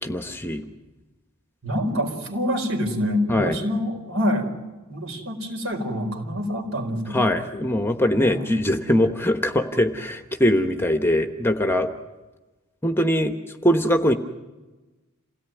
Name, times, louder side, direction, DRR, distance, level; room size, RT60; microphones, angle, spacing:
voice 1, 0.0-0.7 3.3-3.6 7.1-11.9 12.8-14.1, equal, 10° left, 7 dB, 1.1 m, -22 dB
voice 2, 1.6-4.5 4.9-7.3 8.1-8.5, equal, 65° right, 4 dB, 4.8 m, -26 dB
28.0 x 17.5 x 9.2 m, 1.2 s
head